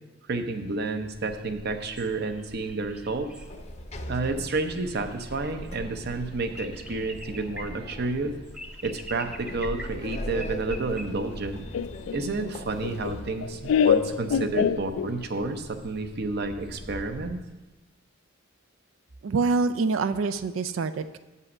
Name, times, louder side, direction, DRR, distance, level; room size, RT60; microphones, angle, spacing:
voice 1, 0.3-3.3 4.1-8.3 8.8-11.7 12.1-17.4, right 3 dB, 55° right, 8 dB, 0.7 m, -30 dB
sound 1, 1.1-17.4, equal, 5° right, 0.5 m, -45 dB
Sliding door, 3.4-13.6, left 1 dB, 35° left, 0.6 m, -40 dB
Laughter, 11.7-15.4, left 7 dB, 85° left, 0.3 m, -25 dB
voice 2, 19.2-21.2, right 4 dB, 85° right, 13 dB, 0.4 m, -26 dB
8.2 x 5.6 x 6.1 m, 1.1 s
head